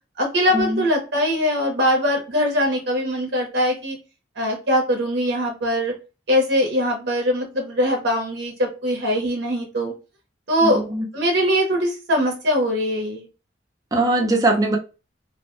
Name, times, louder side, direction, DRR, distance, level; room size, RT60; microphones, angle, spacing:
voice 1, 0.2-4.0 4.4-5.9 6.3-9.9 10.5-10.8 11.1-13.3, equal, 60° right, 0.8 m, -21 dB
voice 2, 10.6-11.0 13.9-14.8, right 2 dB, 20° right, 0.5 m, -20 dB
2.6 x 2.1 x 3.0 m
head